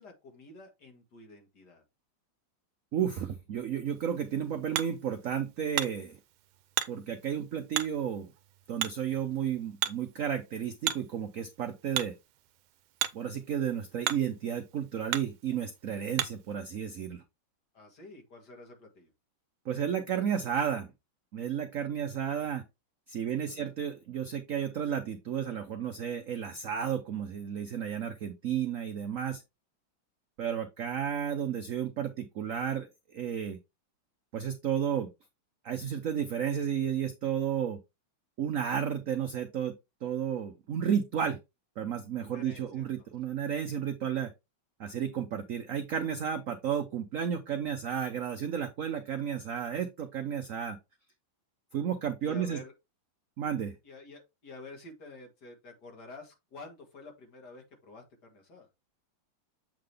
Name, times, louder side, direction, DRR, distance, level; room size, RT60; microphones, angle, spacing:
voice 1, 0.0-1.8 17.7-19.1 22.1-22.5 23.4-23.8 42.2-43.1 52.2-52.7 53.8-58.7, left 2 dB, 55° left, 3 dB, 2.4 m, -50 dB
voice 2, 2.9-6.2 6.9-8.3 8.7-12.2 13.1-17.2 19.7-20.9 21.3-22.6 23.1-29.4 30.4-33.6 34.3-35.1 35.6-37.8 38.4-39.7 40.0-41.4 41.8-44.3 44.8-50.8 51.7-52.6 53.4-53.8, right 8 dB, 65° right, 7 dB, 0.8 m, -32 dB
Hammer, 3.9-16.5, right 12 dB, 80° right, 1.4 m, -38 dB
7.6 x 3.8 x 3.4 m, 0.23 s
omnidirectional pair, 2.2 m